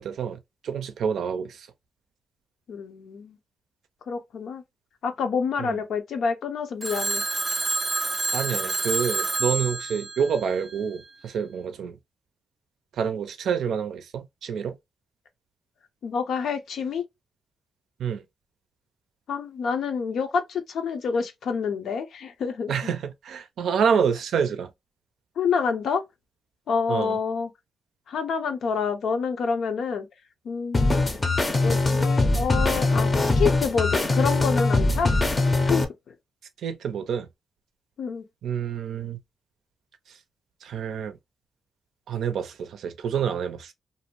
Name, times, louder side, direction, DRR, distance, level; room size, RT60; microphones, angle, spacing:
voice 1, 0.0-1.7 5.6-5.8 8.3-12.0 12.9-14.7 18.0-18.2 22.7-24.7 26.9-27.2 36.6-37.3 38.4-39.2 40.1-40.2 40.6-41.2 42.1-43.7, right 7 dB, 85° right, 0.4 m, -28 dB
voice 2, 2.7-3.4 4.1-4.6 5.0-7.2 16.0-17.0 19.3-22.9 25.4-26.0 26.7-27.5 28.1-30.1 30.4-30.9 31.6-35.1 35.7-35.9 38.0-38.2, left 6 dB, 80° left, 0.5 m, -27 dB
Telephone, 6.8-11.0, right 3 dB, 25° right, 0.3 m, -28 dB
sound 1, 30.7-35.8, left 2 dB, 25° left, 0.5 m, -22 dB
2.6 x 2.1 x 2.9 m
cardioid pair, 110°, 0 cm